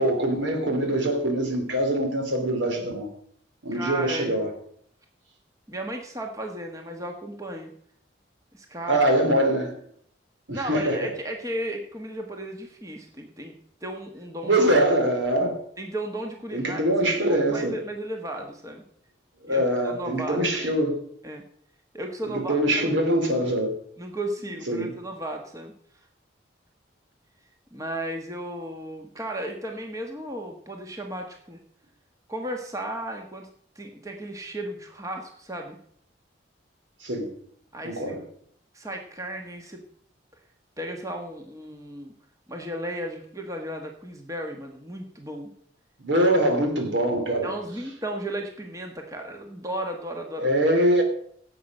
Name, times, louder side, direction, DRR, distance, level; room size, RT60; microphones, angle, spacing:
voice 1, 0.0-3.1 3.6-4.5 8.9-9.7 10.5-11.1 14.4-15.6 16.5-17.8 19.4-21.0 22.2-23.8 24.7-24.9 37.0-37.3 37.8-38.2 46.0-47.6 50.4-51.0, right 1 dB, 75° right, 4 dB, 3.0 m, -23 dB
voice 2, 3.7-4.4 5.7-7.7 8.5-9.2 10.5-13.5 13.8-14.6 15.8-16.8 17.3-18.8 19.5-20.4 20.7-20.8 21.2-21.4 21.9-23.0 24.0-25.7 27.7-31.6 32.3-33.5 33.7-35.8 37.7-38.0 38.7-39.8 40.8-42.1 42.5-45.5 47.4-50.5, right 1 dB, 15° right, 3 dB, 1.2 m, -34 dB
17.0 x 7.9 x 5.4 m, 0.66 s
head